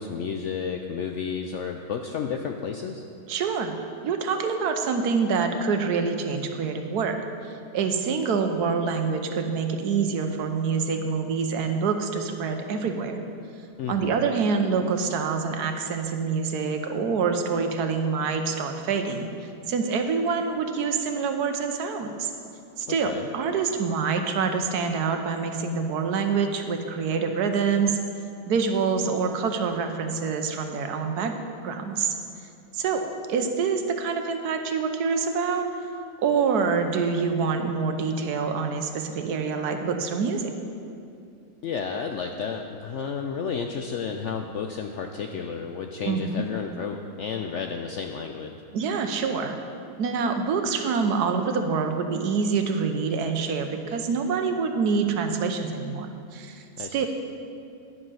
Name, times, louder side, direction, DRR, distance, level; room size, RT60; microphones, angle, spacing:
voice 1, 0.0-3.0 13.8-14.2 22.9-23.3 41.6-48.5 56.8-57.0, left 6 dB, 70° left, 3 dB, 0.7 m, -32 dB
voice 2, 3.3-3.7 4.0-7.2 7.4-13.2 13.9-19.3 19.7-22.3 22.8-28.0 28.5-31.3 31.6-32.2 32.7-33.0 33.3-35.7 36.2-40.5 46.0-46.4 48.7-49.6 50.0-57.1, right 5 dB, 75° right, 6 dB, 1.3 m, -26 dB
11.0 x 7.7 x 5.6 m, 2.5 s
omnidirectional pair, 1.7 m